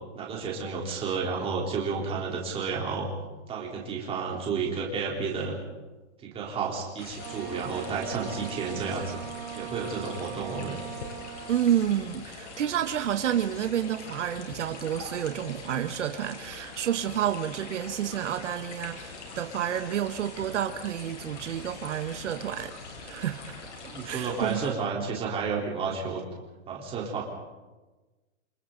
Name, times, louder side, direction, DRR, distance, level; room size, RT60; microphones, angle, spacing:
voice 1, 0.2-3.1 3.5-5.6 6.2-9.2 9.6-10.8 23.9-26.2 26.7-27.2, right 5 dB, 15° right, -2 dB, 3.9 m, -31 dB
sound 1, 7.0-24.7, left 4 dB, 80° left, 6.6 m, -43 dB
Wind instrument woodwind instrument, 7.2-11.7, right 11 dB, 35° right, 1.3 m, -40 dB
voice 2, 11.5-23.6 24.0-24.7, right 10 dB, 80° right, 8 dB, 1.4 m, -30 dB
28.5 x 26.5 x 4.0 m, 1.2 s
hypercardioid pair, 160°, 35 cm